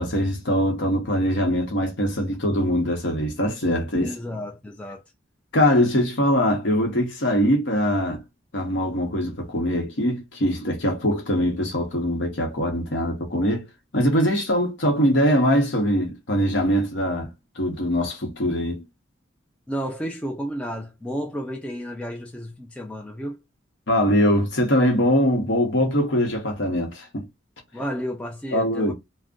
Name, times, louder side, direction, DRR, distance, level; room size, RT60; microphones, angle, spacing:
voice 1, 0.0-4.1 5.5-8.2 8.5-13.6 13.9-17.3 17.6-18.8 23.9-27.2 28.5-28.9, equal, 65° left, 0.8 m, -22 dB
voice 2, 4.0-5.0 19.7-23.4 27.7-28.9, equal, 5° left, 0.3 m, -32 dB
2.5 x 2.1 x 3.6 m
head